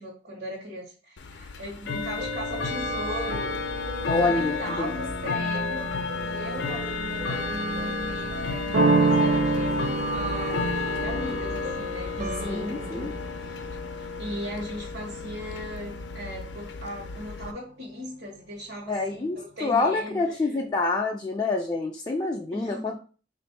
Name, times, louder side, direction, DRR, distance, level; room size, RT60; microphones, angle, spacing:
voice 1, 0.0-3.6 4.2-6.0 6.3-13.7 14.0-20.4 22.5-23.0, equal, 75° right, -4 dB, 1.1 m, -38 dB
Bell / Tick-tock, 1.2-17.5, left 3 dB, 85° left, 0.4 m, -32 dB
sound 1, 2.2-14.3, right 1 dB, 50° right, 0.5 m, -38 dB
voice 2, 4.1-4.9 12.4-13.1 18.9-22.9, left 3 dB, 20° left, 0 dB, 0.3 m, -27 dB
sound 2, 8.7-14.3, right 3 dB, 90° right, 0.6 m, -27 dB
3.5 x 2.5 x 4.5 m, 0.39 s
head